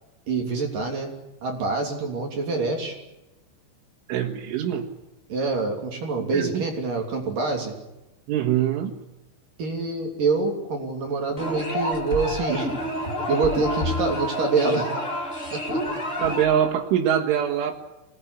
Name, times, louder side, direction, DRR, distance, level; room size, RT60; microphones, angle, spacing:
voice 1, 0.3-1.1 1.4-3.0 5.3-7.7 9.6-12.7 13.3-14.9 15.5-15.6, right 3 dB, 50° right, 2 dB, 4.4 m, -26 dB
voice 2, 4.1-4.9 6.3-6.6 8.3-8.9 16.2-17.7, right 10 dB, 85° right, 0 dB, 4.3 m, -23 dB
sound 1, 11.4-16.7, equal, 15° left, 3.5 m, -28 dB
27.0 x 19.0 x 10.0 m, 0.98 s
omnidirectional pair, 5.4 m